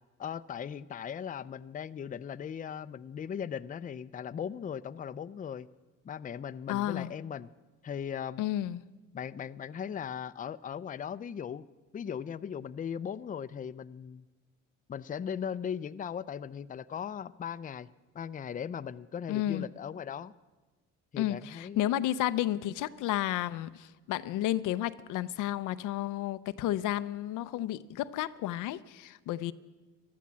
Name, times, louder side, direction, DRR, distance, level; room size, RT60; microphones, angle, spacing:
voice 1, 0.2-5.7 6.0-7.5 7.8-8.4 9.1-11.7 11.9-14.2 14.9-17.9 18.1-20.3 21.1-21.9, left 8 dB, 25° left, 0.4 m, -38 dB
voice 2, 6.7-7.1 8.4-8.9 19.3-19.7 21.2-29.5, left 13 dB, 85° left, 0.6 m, -32 dB
14.5 x 12.0 x 7.4 m
cardioid pair, 90°, 30 cm